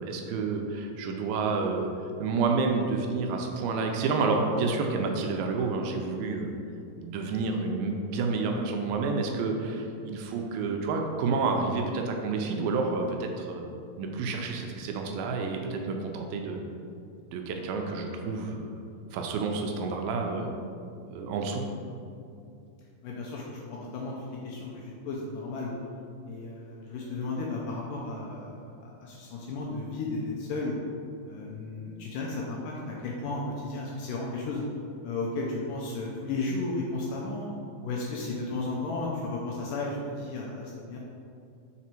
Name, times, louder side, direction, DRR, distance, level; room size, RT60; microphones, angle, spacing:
voice 1, 0.0-6.5 7.0-13.6 14.0-16.6 17.3-18.8 19.1-20.5 21.1-21.6, right 4 dB, 80° right, 3 dB, 2.3 m, -29 dB
voice 2, 23.0-25.7 26.3-30.7 31.3-34.6 35.0-37.5 37.8-41.0, left 3 dB, 80° left, -3 dB, 2.0 m, -34 dB
6.1 x 3.9 x 4.3 m, 2.5 s
omnidirectional pair, 4.3 m